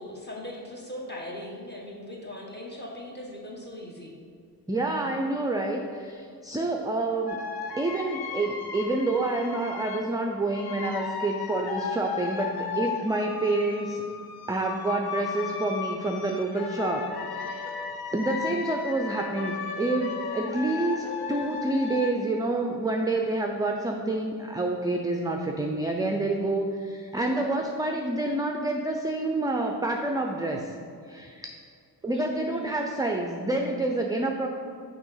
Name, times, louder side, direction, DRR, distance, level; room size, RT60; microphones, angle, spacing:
voice 1, 0.0-4.2 32.1-32.7, left 1 dB, 25° left, -3 dB, 1.4 m, -39 dB
voice 2, 4.7-7.4 7.7-14.0 14.5-17.7 18.1-30.7 31.1-31.5 32.0-34.5, right 2 dB, 10° right, 2 dB, 0.4 m, -28 dB
sound 1, 7.3-10.1 10.5-22.1, left 5 dB, 65° left, 0.7 m, -35 dB
6.2 x 3.0 x 5.6 m, 2.3 s
cardioid pair, 70°, 40 cm